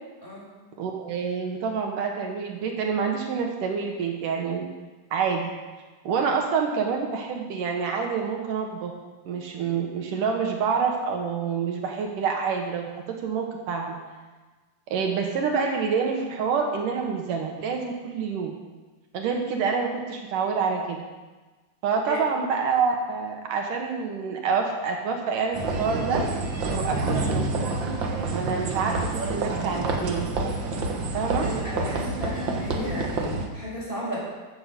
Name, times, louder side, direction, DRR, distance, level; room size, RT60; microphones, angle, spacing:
voice 1, 0.8-4.6 5.1-5.5 6.0-8.9 9.3-12.9 13.2-14.0 14.9-18.5 19.1-21.0 21.8-26.2 26.7-27.5 28.3-30.3 31.1-31.5, right 5 dB, 75° right, 2 dB, 2.8 m, -27 dB
sound 1, 25.5-33.5, right 3 dB, 55° right, 1.3 m, -28 dB
voice 2, 31.4-34.2, equal, 15° left, -6 dB, 5.6 m, -33 dB
14.5 x 8.2 x 6.7 m, 1.3 s
omnidirectional pair, 3.9 m